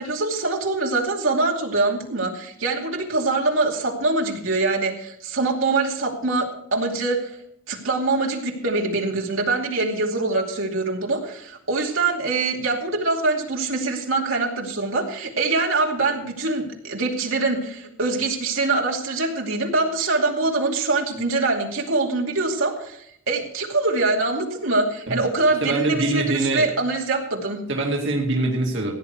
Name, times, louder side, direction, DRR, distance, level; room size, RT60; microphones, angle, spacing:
voice 1, 0.0-7.4 7.7-27.6, right 3 dB, 80° right, 0 dB, 2.6 m, -24 dB
voice 2, 25.6-26.7 27.7-28.9, right 2 dB, 60° right, -1 dB, 2.2 m, -23 dB
16.5 x 9.9 x 4.7 m, 0.73 s
head